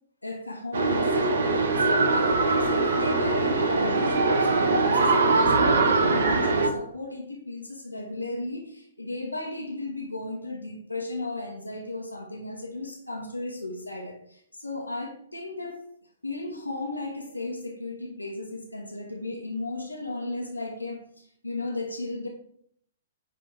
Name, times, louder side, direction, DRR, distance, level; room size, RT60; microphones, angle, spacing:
voice 1, 0.2-15.8 16.2-22.3, left 2 dB, 90° left, 1.3 m, -35 dB
sound 1, 0.7-6.7, right 3 dB, 60° right, 1.0 m, -22 dB
9.7 x 3.5 x 4.8 m
figure-of-eight pair, 115°, 0 cm